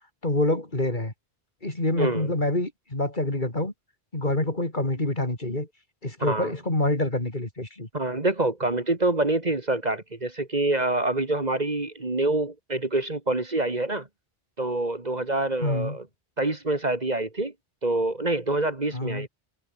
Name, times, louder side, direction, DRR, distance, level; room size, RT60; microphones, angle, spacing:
voice 1, 0.2-1.1 1.6-3.7 4.1-5.7 6.0-7.9 15.6-16.0 18.9-19.3, left 1 dB, 45° left, 4.5 m, -26 dB
voice 2, 2.0-2.3 6.2-6.5 7.9-14.1 14.6-16.0 16.4-17.5 17.8-19.3, right 2 dB, 40° right, 2.3 m, -26 dB
omnidirectional pair, 1.1 m